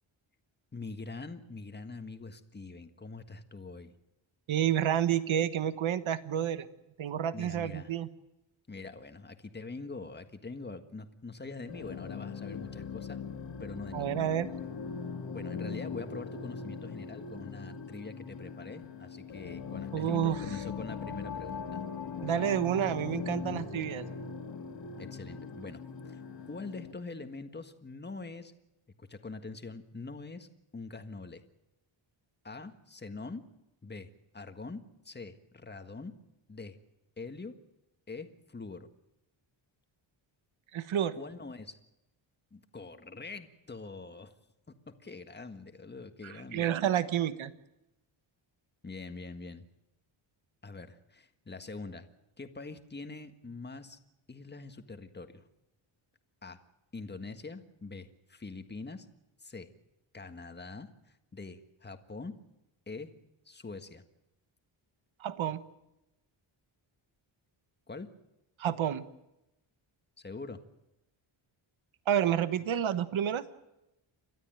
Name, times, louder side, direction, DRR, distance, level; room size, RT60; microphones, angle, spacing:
voice 1, 0.7-3.9 7.3-7.9 8.7-13.2 13.6-14.1 15.3-21.8 25.0-26.2 26.5-28.5 29.0-30.5 30.7-31.4 32.4-33.4 33.8-36.1 36.5-36.8 37.2-37.6 38.1-38.9 41.1-41.8 42.5-44.3 44.7-46.7 48.8-49.6 50.6-52.1 52.4-54.0 54.3-55.4 56.4-56.6 56.9-59.1 59.4-59.7 60.1-62.3 62.9-63.1 63.4-64.0 67.9-68.1 70.2-70.6, left 3 dB, 20° left, 8 dB, 1.6 m, -44 dB
voice 2, 4.5-6.7 7.0-8.1 13.9-14.5 19.9-20.4 22.2-24.1 40.7-41.1 46.2-47.5 65.2-65.6 68.6-69.0 72.1-73.4, right 10 dB, 70° right, 13 dB, 1.3 m, -29 dB
sound 1, 11.7-26.9, left 5 dB, 60° left, 2.7 m, -40 dB
30.0 x 13.0 x 9.0 m, 0.91 s
wide cardioid pair, 125°, 49 cm